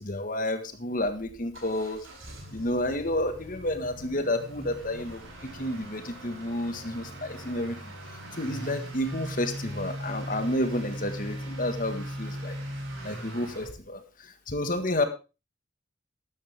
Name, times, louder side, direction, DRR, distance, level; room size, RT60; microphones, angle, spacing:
voice 1, 0.0-2.1 2.5-7.9 8.3-12.6 13.0-15.1, left 1 dB, 45° left, 8 dB, 1.7 m, -30 dB
Motor vehicle (road) / Accelerating revving vroom, 1.0-13.7, right 1 dB, 85° right, 4.8 m, -39 dB
13.0 x 11.5 x 3.6 m, 0.30 s
head